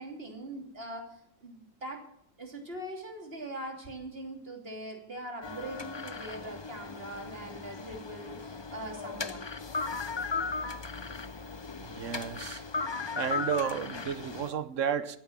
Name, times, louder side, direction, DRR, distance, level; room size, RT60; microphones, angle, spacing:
voice 1, 0.0-2.0 2.4-9.4, right 1 dB, 40° right, 3.3 m, -42 dB
sound 1, 5.4-14.5, left 4 dB, 30° left, 0.5 m, -37 dB
voice 2, 11.8-12.6 13.1-15.2, right 8 dB, 65° right, 1.1 m, -32 dB
16.5 x 9.2 x 7.5 m
omnidirectional pair, 1.5 m